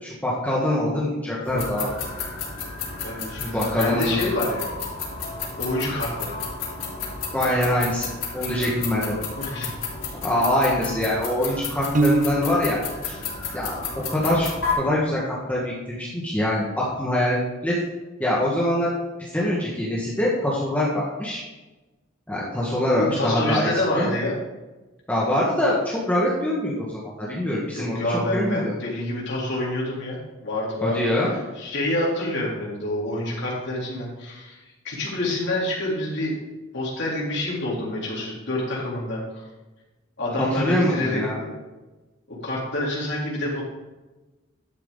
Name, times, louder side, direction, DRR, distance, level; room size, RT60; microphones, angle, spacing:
voice 1, 0.0-1.9 3.4-4.3 7.3-9.1 10.2-13.2 13.5-17.7 18.2-18.9 19.3-21.4 22.3-24.1 25.1-28.7 30.8-31.3 40.5-41.4, left 1 dB, 10° left, -5 dB, 1.6 m, -24 dB
sound 1, 1.4-14.7, left 5 dB, 85° left, 3.4 m, -32 dB
voice 2, 3.0-4.7 5.2-5.3 5.6-6.4 8.5-8.7 9.4-9.7 23.0-24.4 27.7-36.4 36.7-39.4 40.2-41.5 42.3-43.6, left 1 dB, 60° left, -5 dB, 3.3 m, -27 dB
Piano, 11.9-12.9, right 2 dB, 40° right, 0.7 m, -22 dB
11.5 x 7.2 x 3.9 m, 1.1 s
head